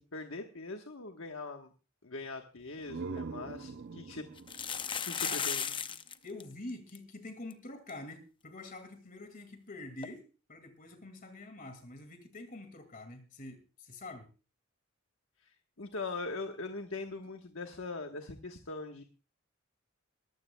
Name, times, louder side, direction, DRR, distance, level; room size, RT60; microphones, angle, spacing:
voice 1, 0.0-1.7 2.0-4.3 5.0-5.7 15.4-19.0, left 3 dB, 70° left, 5 dB, 1.2 m, -41 dB
sound 1, 2.6-6.2, right 4 dB, 55° right, 0.5 m, -44 dB
sound 2, 2.8-2.9 3.2-3.3 4.4-6.1 6.4-6.5 6.7-7.0 7.5-7.6 7.9-8.0 10.0-10.1, left 7 dB, 25° left, 0.7 m, -35 dB
voice 2, 6.2-14.3, left 2 dB, 40° left, 7 dB, 2.1 m, -46 dB
22.0 x 14.0 x 2.2 m, 0.32 s
head